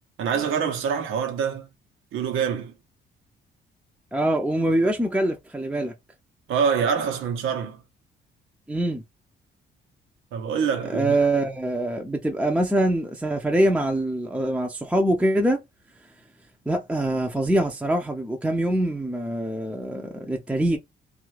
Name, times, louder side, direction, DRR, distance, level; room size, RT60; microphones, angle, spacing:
voice 1, 0.2-1.7 2.1-2.7 6.5-7.8 10.3-11.1, right 7 dB, 90° right, 0.9 m, -25 dB
voice 2, 4.1-5.9 8.7-9.0 10.9-15.6 16.7-20.8, right 1 dB, 5° right, 0.5 m, -24 dB
2.7 x 2.4 x 3.1 m
cardioid pair, 90°, 20 cm